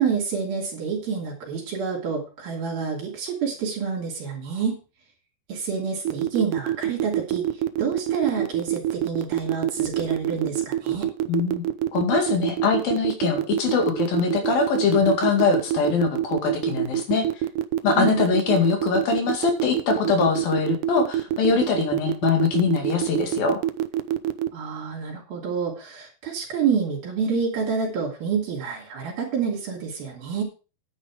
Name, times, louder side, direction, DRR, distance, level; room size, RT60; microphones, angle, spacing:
voice 1, 0.0-4.8 5.5-7.5 7.8-11.1 18.0-18.2 24.5-30.4, right 6 dB, 65° right, -1 dB, 4.6 m, -28 dB
sound 1, 6.1-24.5, right 12 dB, 85° right, 1.8 m, -25 dB
voice 2, 11.3-11.6 11.9-17.3 17.8-23.6, left 5 dB, 65° left, 4 dB, 3.8 m, -23 dB
9.9 x 9.9 x 4.9 m, 0.34 s
omnidirectional pair, 4.6 m